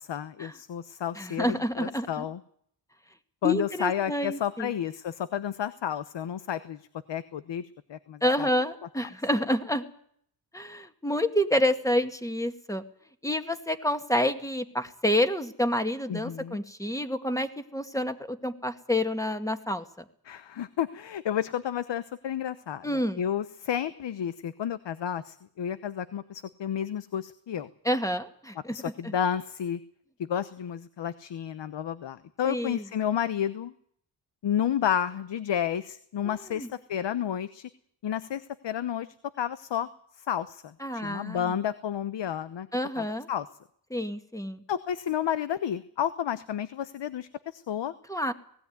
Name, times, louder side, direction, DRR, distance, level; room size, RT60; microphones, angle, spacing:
voice 1, 0.0-2.4 3.4-8.5 16.1-16.6 20.2-27.7 28.7-29.8 30.2-33.7 34.4-37.7 38.0-39.1 39.4-39.9 40.2-42.7 43.0-43.5 44.7-47.9, left 9 dB, 75° left, 14 dB, 1.0 m, -31 dB
voice 2, 1.2-2.3 3.4-4.7 8.2-9.8 10.5-12.8 13.2-19.8 22.8-23.2 27.8-29.1 32.5-32.8 36.5-36.7 40.8-41.6 42.7-43.3 43.9-44.6 48.1-48.3, left 1 dB, 5° left, 8 dB, 2.1 m, -28 dB
19.0 x 16.0 x 9.6 m, 0.64 s
cardioid pair, 70°, 43 cm